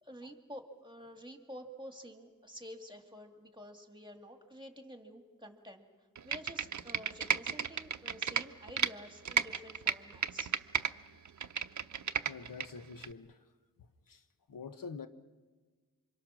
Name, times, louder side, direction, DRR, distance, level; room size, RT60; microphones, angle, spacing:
voice 1, 0.0-5.9 6.2-10.5, equal, 15° right, 1.9 m, -50 dB
Computer keyboard, 6.2-8.9 9.3-10.9 11.3-12.7 13.0-13.1, right 7 dB, 55° right, 0.7 m, -33 dB
voice 2, 12.3-13.4 14.1-14.2 14.5-15.1, left 5 dB, 70° left, 1.1 m, -45 dB
27.5 x 25.0 x 6.2 m
wide cardioid pair, 115°, 34 cm